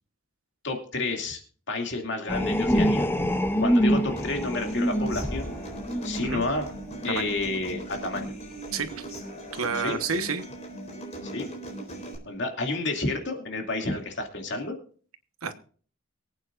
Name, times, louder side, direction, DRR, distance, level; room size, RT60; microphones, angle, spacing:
voice 1, 0.6-1.4 1.7-3.1 3.6-5.5 6.0-6.6 7.0-8.3 9.8-10.0 11.3-11.5 12.3-14.7, left 2 dB, 55° left, 2.5 m, -30 dB
sound 1, 2.3-7.5 8.1-8.4, equal, 10° left, 0.6 m, -26 dB
Human voice / Acoustic guitar, 4.2-12.1, right 1 dB, 30° left, 3.9 m, -39 dB
voice 2, 8.7-9.1 9.5-10.4 15.4-15.5, right 5 dB, 85° right, 1.3 m, -29 dB
24.0 x 8.8 x 2.6 m
head